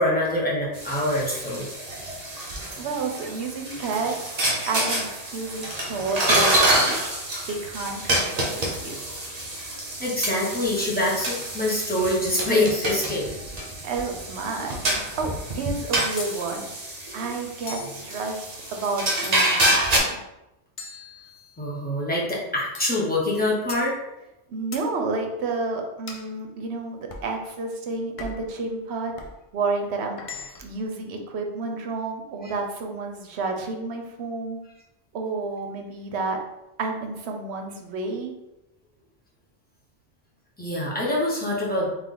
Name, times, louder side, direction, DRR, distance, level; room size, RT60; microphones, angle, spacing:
voice 1, 0.0-1.7 10.0-13.3 21.6-23.9 40.6-41.9, left 1 dB, 10° left, -6 dB, 1.0 m, -25 dB
sound 1, 0.7-20.0, right 1 dB, 40° right, 0.8 m, -27 dB
voice 2, 2.8-4.3 4.7-7.0 7.5-9.0 13.8-14.8 15.2-16.7 17.1-20.1 24.5-29.1 29.5-34.6 35.1-36.4 36.8-38.3, right 3 dB, 75° right, 3 dB, 0.9 m, -30 dB
sound 2, 16.2-16.4 17.7-18.0 19.2-19.7 20.8-21.7 22.7-23.0 23.7-23.9 24.7-24.9 26.1-26.3 27.1-27.3 28.2-28.5 29.2-29.4 30.2-30.8, left 4 dB, 50° left, 0.4 m, -39 dB
3.5 x 3.0 x 3.8 m, 0.93 s
omnidirectional pair, 1.1 m